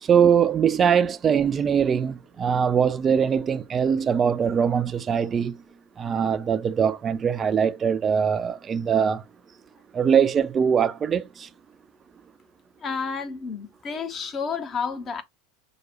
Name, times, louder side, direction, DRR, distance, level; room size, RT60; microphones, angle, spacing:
voice 1, 0.0-5.6 6.0-9.2 9.9-11.5, right 7 dB, 30° right, 0.3 m, -22 dB
voice 2, 12.8-15.2, left 5 dB, 30° left, 0.8 m, -30 dB
5.8 x 2.3 x 2.9 m
figure-of-eight pair, 80°, 0 cm